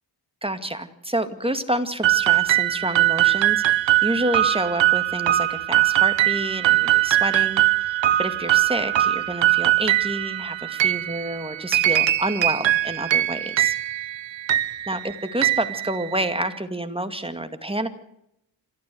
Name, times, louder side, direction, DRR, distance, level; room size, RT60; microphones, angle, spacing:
voice 1, 0.4-13.8 14.9-17.9, right 1 dB, 10° right, 9 dB, 2.2 m, -28 dB
sound 1, 2.0-16.5, right 14 dB, 85° right, 0.9 m, -21 dB
27.0 x 13.5 x 7.9 m, 0.81 s
wide cardioid pair, 85°, 44 cm